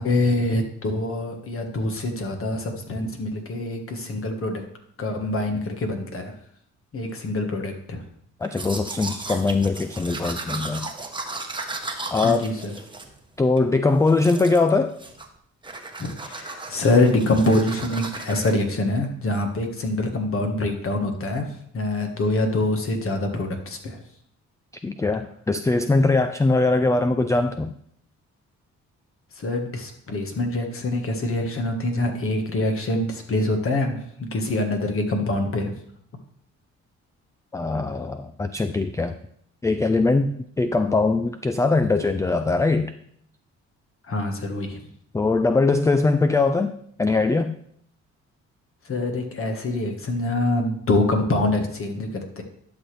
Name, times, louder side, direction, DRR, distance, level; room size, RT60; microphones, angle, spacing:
voice 1, 0.0-4.6 5.0-6.3 6.9-8.0 12.2-12.7 16.0-21.5 21.7-24.0 29.4-35.7 44.1-44.8 48.9-52.4, left 2 dB, 45° left, 4 dB, 1.5 m, -25 dB
voice 2, 8.4-10.9 12.1-12.5 13.4-15.0 24.8-27.7 37.5-39.2 39.6-42.9 45.1-47.5, left 3 dB, 10° left, 9 dB, 0.3 m, -21 dB
Domestic sounds home sounds, 8.4-13.7 14.1-14.7 15.0-15.4 15.6-18.5, right 3 dB, 15° right, 1.0 m, -35 dB
11.5 x 6.1 x 3.3 m, 0.67 s
cardioid pair, 90°, 30 cm